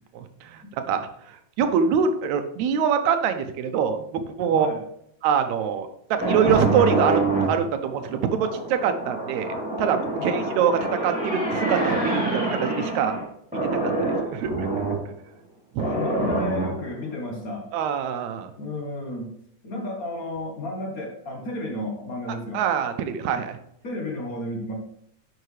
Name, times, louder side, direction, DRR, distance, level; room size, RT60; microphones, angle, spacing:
voice 1, 0.2-4.7 5.2-7.2 7.5-13.2 13.6-13.9 14.3-14.7 15.7-15.9 17.7-18.5 22.5-23.6, right 7 dB, 75° right, 8 dB, 2.0 m, -24 dB
sound 1, 6.2-13.2 13.5-15.0 15.8-16.9, right 2 dB, 5° right, 2.6 m, -26 dB
voice 2, 10.2-10.5 15.8-17.7 18.6-19.3 19.6-22.6 23.8-24.7, left 2 dB, 60° left, 0 dB, 0.9 m, -32 dB
11.0 x 5.9 x 3.2 m, 0.72 s
omnidirectional pair, 3.5 m